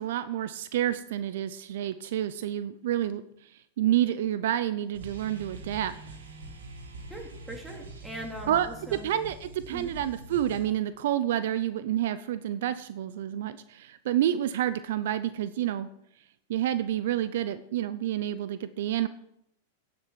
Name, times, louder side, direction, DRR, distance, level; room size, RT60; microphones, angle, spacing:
voice 1, 0.0-3.2 3.8-5.9 8.5-15.9 16.5-19.1, right 11 dB, 70° right, 14 dB, 0.5 m, -29 dB
sound 1, 4.9-10.6, right 2 dB, 90° right, 2.3 m, -44 dB
voice 2, 7.1-9.1 9.7-9.9, right 1 dB, 10° right, 1 dB, 2.8 m, -41 dB
9.7 x 7.8 x 5.7 m, 0.75 s
hypercardioid pair, 115°, 0 cm